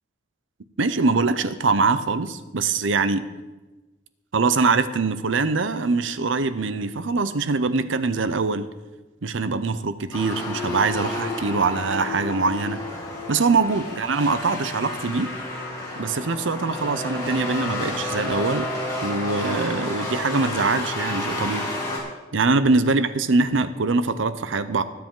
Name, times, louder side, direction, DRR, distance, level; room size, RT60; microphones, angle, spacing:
voice 1, 0.8-3.2 4.3-8.7 9.2-13.0 13.3-15.3 16.0-18.7 19.0-21.6 22.3-24.8, right 4 dB, 80° right, 12 dB, 0.7 m, -23 dB
sound 1, 10.1-22.0, left 2 dB, 20° left, 2.5 m, -30 dB
20.0 x 7.6 x 3.8 m, 1.2 s
head